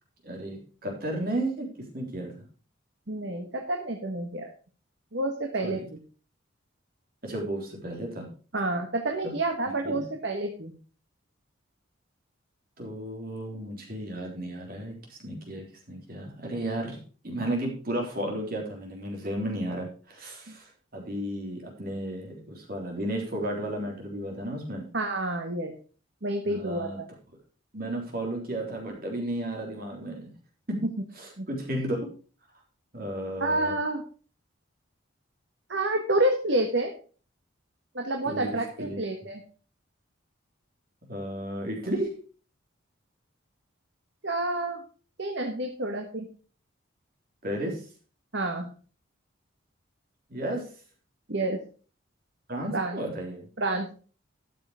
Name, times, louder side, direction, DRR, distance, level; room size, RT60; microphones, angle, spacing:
voice 1, 0.2-1.7 1.9-2.5 5.6-5.9 7.2-8.3 9.8-10.1 12.8-24.8 26.4-27.0 27.7-30.3 30.7-30.8 31.2-32.1 32.9-33.8 38.3-39.0 41.1-42.1 47.4-47.8 50.3-50.7 52.5-53.5, right 1 dB, 45° right, 0 dB, 3.7 m, -33 dB
voice 2, 3.1-4.5 5.1-6.0 8.5-10.7 20.5-20.6 24.9-25.7 26.2-27.1 31.4-31.5 33.4-34.0 35.7-36.9 37.9-39.4 44.2-44.8 45.2-46.3 48.3-48.7 51.3-51.6 52.7-53.0 53.6-53.9, right 2 dB, 65° right, 3 dB, 1.6 m, -29 dB
13.0 x 6.8 x 5.0 m, 0.38 s
head